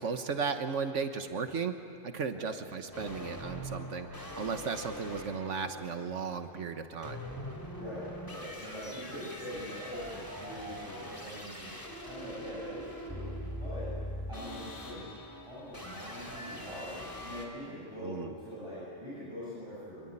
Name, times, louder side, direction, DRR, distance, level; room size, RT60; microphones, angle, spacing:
voice 1, 0.0-1.7 2.0-7.2 18.0-18.3, right 5 dB, 80° right, 8 dB, 1.5 m, -35 dB
sound 1, 2.9-17.5, equal, 15° left, 3.2 m, -43 dB
voice 2, 7.7-13.9 14.3-15.1 15.5-20.1, equal, 25° right, -9 dB, 8.0 m, -43 dB
25.5 x 21.5 x 10.0 m, 2.5 s
omnidirectional pair, 1.2 m